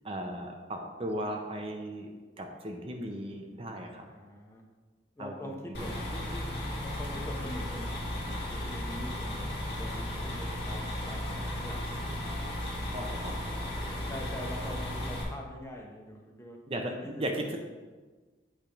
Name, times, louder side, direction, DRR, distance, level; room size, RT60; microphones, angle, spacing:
voice 1, 0.0-2.1 2.4-4.0 5.2-6.0 12.9-13.3 16.7-16.8 17.2-17.6, right 1 dB, 30° right, 3 dB, 0.6 m, -37 dB
voice 2, 4.1-4.6 5.2-6.2 6.8-9.4 9.7-12.3 12.9-13.3 14.1-17.6, equal, 15° left, 0 dB, 0.8 m, -44 dB
sound 1, 5.7-15.2, left 1 dB, 65° left, 2.0 m, -35 dB
8.2 x 3.4 x 5.1 m, 1.3 s
head